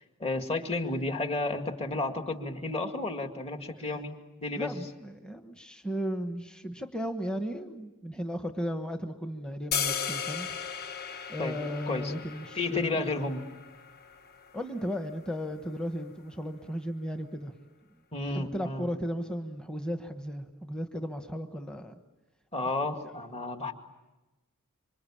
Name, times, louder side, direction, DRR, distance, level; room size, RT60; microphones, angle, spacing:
voice 1, 0.0-4.8 11.4-11.6 11.9-12.1 12.5-13.5 18.1-18.9 22.5-23.7, left 2 dB, 25° left, 5 dB, 2.1 m, -32 dB
voice 2, 4.5-10.5 11.3-13.1 14.5-17.5 18.3-21.9 22.9-23.2, equal, 5° left, 6 dB, 1.1 m, -35 dB
sound 1, 9.7-15.8, left 7 dB, 45° left, 1.2 m, -37 dB
27.0 x 25.5 x 8.7 m, 1.1 s
head